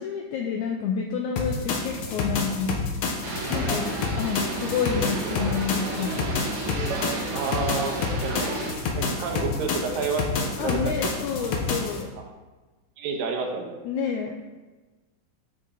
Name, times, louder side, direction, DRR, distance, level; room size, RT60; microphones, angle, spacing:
voice 1, 0.0-2.8 3.5-6.2 10.6-12.1 13.9-14.3, left 6 dB, 90° left, 3 dB, 1.7 m, -29 dB
sound 1, 1.4-12.0, left 4 dB, 65° left, 2.3 m, -29 dB
sound 2, 3.2-8.7, right 3 dB, 50° right, 1.9 m, -33 dB
voice 2, 7.3-7.9 8.2-8.5 8.9-10.9 13.0-13.8, right 4 dB, 75° right, 2 dB, 2.7 m, -29 dB
11.5 x 6.1 x 3.9 m, 1.2 s
omnidirectional pair, 4.1 m